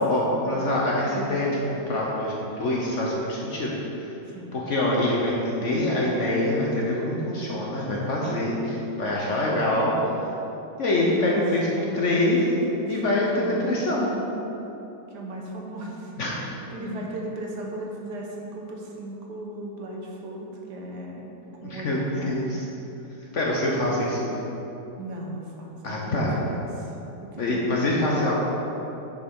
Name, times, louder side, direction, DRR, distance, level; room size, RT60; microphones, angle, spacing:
voice 1, 0.0-4.1 4.5-9.9 10.8-12.4 12.9-14.1 16.2-16.4 16.8-17.0 21.6-22.7 23.3-24.3 25.8-26.4 27.4-28.3, left 1 dB, 50° left, -4 dB, 1.1 m, -25 dB
voice 2, 8.2-8.5 9.2-9.5 11.1-11.7 12.5-12.9 13.3-13.7 15.1-16.2 16.7-21.3 21.6-22.4 25.0-26.0 26.4-27.0 27.2-27.6, right 1 dB, 65° right, -1 dB, 1.5 m, -37 dB
6.7 x 5.3 x 5.4 m, 3.0 s
omnidirectional pair, 2.0 m